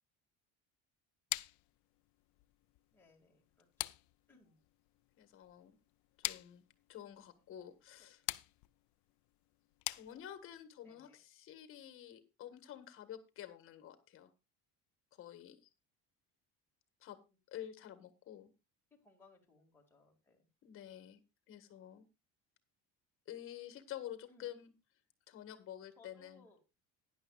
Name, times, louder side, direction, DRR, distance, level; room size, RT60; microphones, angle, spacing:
sound 1, 1.3-10.6, left 22 dB, 60° left, 0.5 m, -45 dB
voice 1, 2.9-3.9 4.3-4.6 7.4-7.5 8.0-8.1 10.8-11.2 17.3-17.4 19.0-20.4 24.3-24.5 26.0-26.6, left 3 dB, 5° left, -2 dB, 2.3 m, -65 dB
voice 2, 5.2-5.7 6.2-6.6 6.9-8.2 9.9-14.3 15.2-15.7 17.0-17.2 17.5-18.5 20.6-21.2 21.5-22.0 23.3-24.7 25.3-26.5, left 11 dB, 40° left, 10 dB, 1.5 m, -49 dB
16.0 x 10.5 x 2.4 m, 0.26 s
cardioid pair, 170°, 33 cm